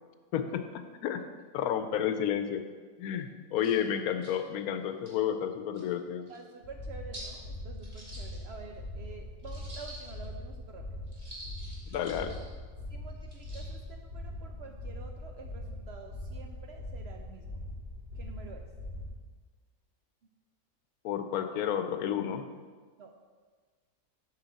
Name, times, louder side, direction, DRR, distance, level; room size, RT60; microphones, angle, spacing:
voice 1, 0.3-1.2 1.5-2.6 3.0-6.3 11.9-12.4 21.0-22.4, left 9 dB, 80° left, 9 dB, 1.0 m, -31 dB
sound 1, 3.2-3.3 3.6-3.8 4.2-4.3 4.9-5.2 5.7-5.8 6.3-6.4 7.1-7.3 7.8-8.8 9.4-10.3 11.1-12.4 13.2-13.7, right 1 dB, 25° right, 1.7 m, -47 dB
voice 2, 6.3-11.0 12.9-17.7 18.2-18.7 23.0-23.1, right 5 dB, 65° right, 3 dB, 0.7 m, -49 dB
sound 2, 6.6-19.1, left 1 dB, 45° right, 2.8 m, -42 dB
7.0 x 6.3 x 4.1 m, 1.5 s
omnidirectional pair, 1.5 m